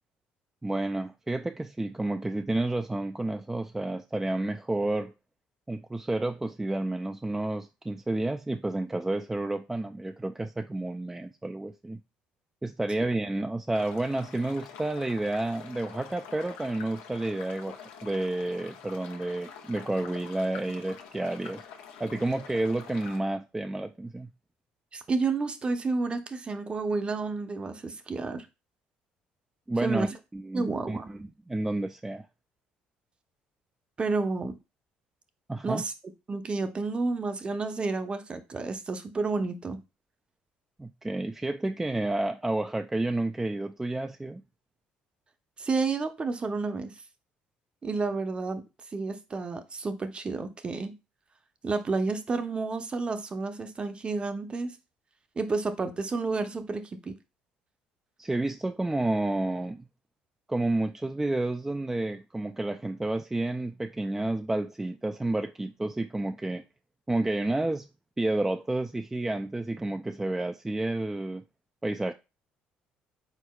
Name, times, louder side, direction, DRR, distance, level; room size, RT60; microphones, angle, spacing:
voice 1, 0.6-5.1 5.7-12.0 12.6-21.6 22.0-24.3 29.7-30.1 30.3-32.3 35.5-35.8 40.8-44.4 58.2-59.9 60.5-66.6 67.1-67.9 68.2-71.4 71.8-72.1, right 2 dB, 10° right, 0.3 m, -30 dB
sound 1, 13.7-23.2, left 7 dB, 90° left, 0.7 m, -46 dB
voice 2, 24.9-28.5 29.8-30.1 30.5-31.1 34.0-34.6 35.6-35.9 36.3-39.8 45.6-46.9 47.8-48.6 48.9-50.9 51.6-54.7 55.4-57.2, right 3 dB, 30° right, 0.7 m, -30 dB
4.6 x 4.1 x 2.3 m
supercardioid pair, 80°, 3 cm